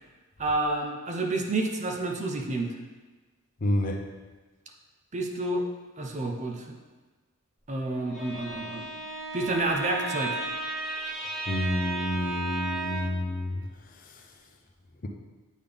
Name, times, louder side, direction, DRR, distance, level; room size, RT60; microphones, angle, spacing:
voice 1, 0.4-2.7 5.1-5.6 6.0-6.7 7.7-8.9 9.3-10.4, right 2 dB, 35° right, 2 dB, 0.6 m, -29 dB
voice 2, 3.6-4.0 11.5-13.6, left 1 dB, 40° left, 2 dB, 0.6 m, -28 dB
Bowed string instrument, 8.0-13.3, right 2 dB, 5° left, 1.0 m, -34 dB
8.2 x 3.8 x 3.5 m, 1.2 s
head